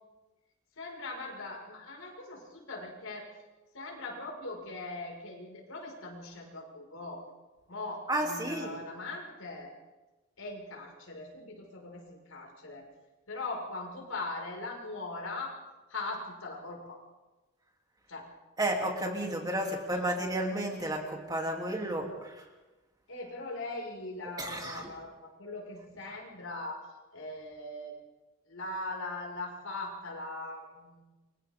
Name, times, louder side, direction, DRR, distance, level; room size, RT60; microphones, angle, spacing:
voice 1, 0.8-3.3 3.7-7.2 7.7-9.7 10.4-12.8 13.3-15.6 15.9-17.0 18.1-18.3 20.1-20.2 23.1-26.9 27.1-27.9 28.5-31.0, left 2 dB, 90° left, 0 dB, 5.5 m, -40 dB
voice 2, 8.1-8.8 18.6-22.4 24.4-24.9, right 1 dB, 20° right, 0 dB, 3.1 m, -32 dB
30.0 x 24.0 x 3.7 m, 1.1 s
head